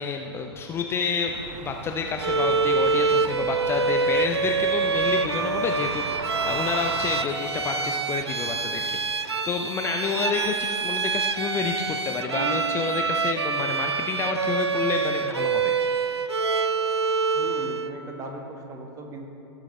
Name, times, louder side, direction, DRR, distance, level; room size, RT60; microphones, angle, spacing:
voice 1, 0.0-1.3 1.6-16.2, left 5 dB, 20° left, 3 dB, 0.5 m, -29 dB
sound 1, 1.3-7.2, right 6 dB, 45° right, 0.7 m, -38 dB
Bowed string instrument, 2.2-18.0, right 4 dB, 85° right, 0.4 m, -26 dB
voice 2, 17.3-19.3, right 1 dB, 25° right, 2 dB, 1.3 m, -38 dB
18.0 x 7.6 x 3.1 m, 2.8 s
figure-of-eight pair, 105°, 14 cm